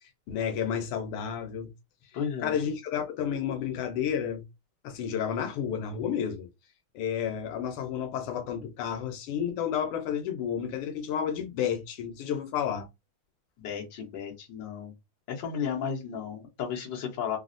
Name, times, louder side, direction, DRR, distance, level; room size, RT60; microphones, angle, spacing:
voice 1, 0.3-1.7 2.4-4.4 4.8-6.5 6.9-12.9, left 8 dB, 90° left, 1.6 m, -31 dB
voice 2, 2.1-2.5 13.6-14.9 15.3-17.4, left 7 dB, 60° left, 1.6 m, -34 dB
4.1 x 2.0 x 2.5 m
omnidirectional pair, 2.4 m